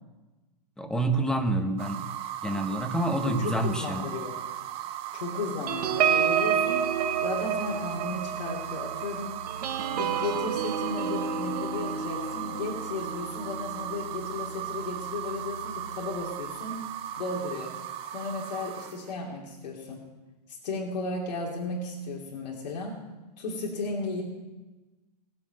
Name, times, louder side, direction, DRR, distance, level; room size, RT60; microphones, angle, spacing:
voice 1, 0.8-2.1 2.4-4.0, right 1 dB, 5° left, 6 dB, 1.1 m, -27 dB
sound 1, 1.8-19.1, right 11 dB, 30° right, 0.8 m, -37 dB
voice 2, 3.2-4.4 5.1-6.9 7.2-9.4 9.9-16.8 17.2-17.8 18.1-20.0 20.5-23.0 23.4-24.2, left 3 dB, 85° left, -2 dB, 3.0 m, -34 dB
sound 2, 5.7-14.6 15.0-15.2 15.5-15.8, right 7 dB, 70° right, 1.6 m, -30 dB
17.5 x 7.8 x 7.7 m, 1.2 s
supercardioid pair, 150°, 21 cm